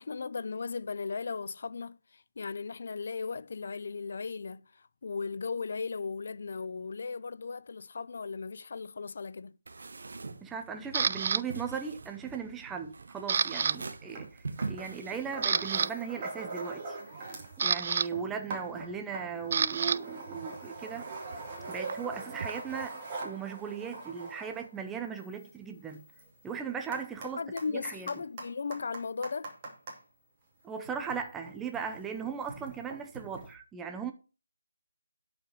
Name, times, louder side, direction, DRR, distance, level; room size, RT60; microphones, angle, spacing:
voice 1, 0.0-9.6 27.4-29.5, left 4 dB, 50° left, 0.5 m, -37 dB
sound 1, 9.7-15.8, right 3 dB, 60° right, 1.2 m, -43 dB
voice 2, 10.4-17.0 17.6-21.2 21.7-26.0 26.4-27.4 27.7-28.1 30.6-34.1, right 6 dB, 5° right, 0.7 m, -38 dB
Camera, 10.9-11.4 12.0-12.3 12.7-13.8 14.0-14.2 14.8-14.9 15.3-15.9 17.1-20.0 20.3-22.9, right 6 dB, 40° right, 0.4 m, -30 dB
sound 2, 14.1-14.3 14.6-17.6 17.9-30.0 30.8-33.5, right 3 dB, 25° right, 2.4 m, -43 dB
10.0 x 5.1 x 6.1 m
figure-of-eight pair, 160°, 0 cm